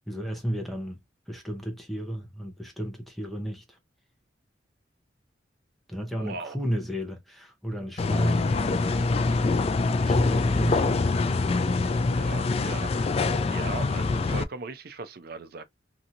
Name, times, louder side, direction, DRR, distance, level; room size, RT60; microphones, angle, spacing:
voice 1, 0.1-1.0 1.3-3.8 5.9-9.0 10.0-11.0, equal, ahead, 0.7 m, -33 dB
voice 2, 6.2-6.6 12.1-12.9 13.2-15.6, right 4 dB, 55° right, 0.5 m, -39 dB
sound 1, 8.0-14.4, left 3 dB, 35° left, 0.3 m, -25 dB
2.9 x 2.6 x 2.5 m
head